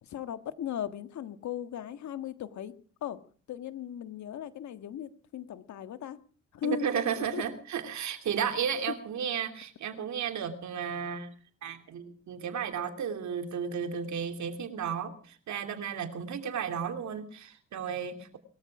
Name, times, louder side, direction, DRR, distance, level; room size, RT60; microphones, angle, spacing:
voice 1, 0.0-2.7 3.0-3.2 3.5-6.2 6.5-6.9 7.3-7.4, left 10 dB, 70° left, 11 dB, 1.6 m, -37 dB
voice 2, 6.6-11.3 11.6-18.4, right 7 dB, 70° right, 7 dB, 3.0 m, -33 dB
21.0 x 14.0 x 4.9 m, 0.43 s
cardioid pair, 90°, 30 cm